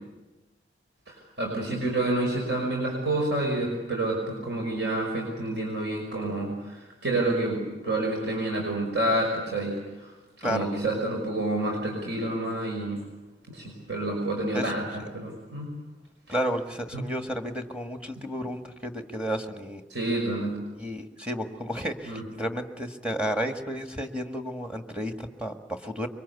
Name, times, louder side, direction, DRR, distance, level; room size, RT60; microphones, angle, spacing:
voice 1, 1.1-10.1 10.4-13.0 13.5-15.7 16.3-16.4 16.9-17.0 19.9-20.6 22.0-22.2, right 2 dB, 65° right, 0 dB, 5.9 m, -29 dB
voice 2, 14.5-15.1 16.3-19.8 20.8-26.1, equal, 5° right, 5 dB, 1.7 m, -32 dB
25.5 x 23.5 x 8.3 m, 1.1 s
head